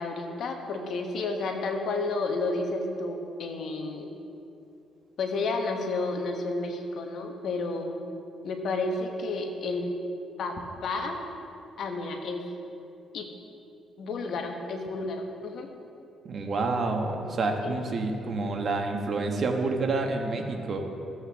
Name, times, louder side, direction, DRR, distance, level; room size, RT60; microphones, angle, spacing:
voice 1, 0.0-4.1 5.2-8.0 8.4-10.0 10.4-11.2 11.8-12.5 13.1-13.3 14.0-15.7 17.6-17.8, left 3 dB, 65° left, 4 dB, 1.2 m, -31 dB
voice 2, 16.2-20.8, right 3 dB, 50° right, 3 dB, 1.2 m, -28 dB
14.5 x 7.9 x 3.5 m, 2.6 s
cardioid pair, 90°, 0 cm